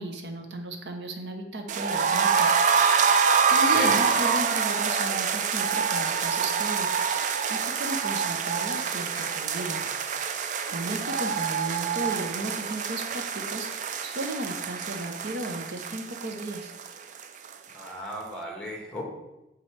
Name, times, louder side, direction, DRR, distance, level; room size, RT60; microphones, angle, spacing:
voice 1, 0.0-2.6 3.5-6.9 7.5-9.8 10.7-13.7 14.0-16.7, right 1 dB, 75° right, 4 dB, 0.9 m, -35 dB
sound 1, 1.7-17.5 17.8-17.9 18.2-18.3, right 6 dB, 45° right, 0.3 m, -26 dB
voice 2, 17.7-19.0, left 1 dB, 5° left, -1 dB, 1.3 m, -34 dB
8.4 x 3.8 x 3.3 m, 0.96 s
head